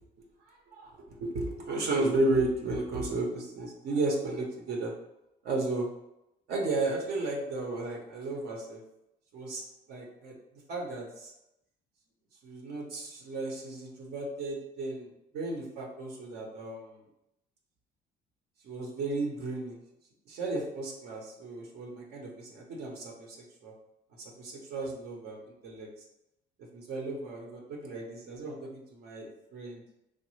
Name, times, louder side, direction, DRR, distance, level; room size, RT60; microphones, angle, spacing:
voice 1, 0.7-4.9 5.4-5.9 6.5-8.8 9.3-9.6 9.9-10.4 10.7-11.3 12.4-15.1 15.3-17.0 18.6-19.8 20.3-23.4 23.6-23.7 24.2-25.9 26.7-29.8, right 2 dB, 70° right, 0 dB, 0.7 m, -34 dB
3.1 x 2.1 x 3.1 m, 0.85 s
cardioid pair, 110°, 17 cm